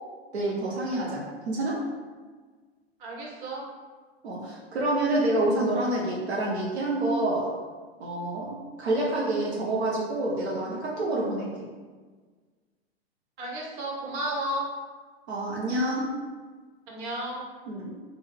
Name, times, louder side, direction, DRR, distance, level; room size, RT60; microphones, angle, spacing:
voice 1, 0.3-1.8 4.2-7.5 8.0-11.6 15.3-16.2 17.7-18.0, right 1 dB, 85° right, -5 dB, 1.0 m, -28 dB
voice 2, 3.0-3.6 13.4-14.7 16.9-17.5, right 1 dB, 50° right, -3 dB, 1.5 m, -33 dB
3.8 x 2.6 x 4.5 m, 1.4 s
hypercardioid pair, 115°, 32 cm